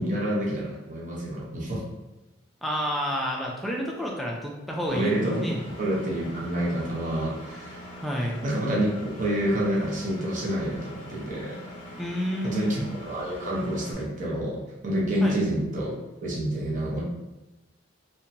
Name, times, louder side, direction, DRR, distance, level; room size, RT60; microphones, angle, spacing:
voice 1, 0.0-1.8 4.9-5.4 5.8-7.9 8.4-11.6 12.4-16.0 16.2-17.0, right 1 dB, 40° right, -4 dB, 0.7 m, -28 dB
voice 2, 2.6-5.6 8.0-8.4 12.0-12.8 15.2-15.4, equal, ahead, -2 dB, 0.4 m, -29 dB
Engine, 4.9-13.9, equal, 35° left, 0.8 m, -43 dB
2.8 x 2.1 x 2.6 m, 1.0 s
head